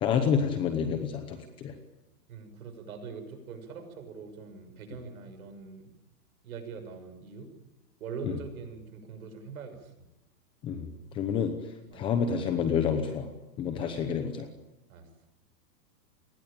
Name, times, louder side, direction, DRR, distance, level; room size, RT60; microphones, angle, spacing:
voice 1, 0.0-1.8 8.2-8.3 10.6-10.9 11.1-11.5 11.9-13.3 13.6-14.5, left 7 dB, 10° left, 8 dB, 0.9 m, -28 dB
voice 2, 2.3-5.9 6.4-7.5 8.0-10.1 11.9-12.0 13.8-14.0 14.9-15.1, right 5 dB, 55° right, 7 dB, 6.6 m, -43 dB
29.0 x 20.0 x 8.9 m, 0.92 s
hypercardioid pair, 170°, 49 cm